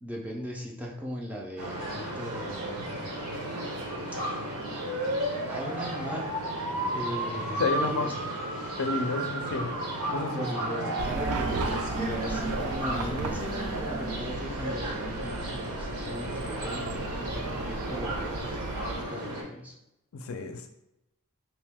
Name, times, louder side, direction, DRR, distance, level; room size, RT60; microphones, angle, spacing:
voice 1, 0.0-3.1 5.5-6.3 6.9-8.1 10.3-19.7, equal, 5° right, -2 dB, 0.4 m, -38 dB
sound 1, 1.6-19.4, right 1 dB, 75° right, 0.9 m, -33 dB
voice 2, 7.6-8.1 8.8-9.7 10.1-10.5 20.1-20.7, left 3 dB, 65° left, 5 dB, 0.4 m, -30 dB
sound 2, 10.7-15.4, right 3 dB, 50° right, 0.7 m, -38 dB
Chatter / Car passing by / Traffic noise roadway noise, 11.0-19.0, right 3 dB, 90° right, 0.4 m, -36 dB
2.9 x 2.6 x 3.4 m, 0.86 s
head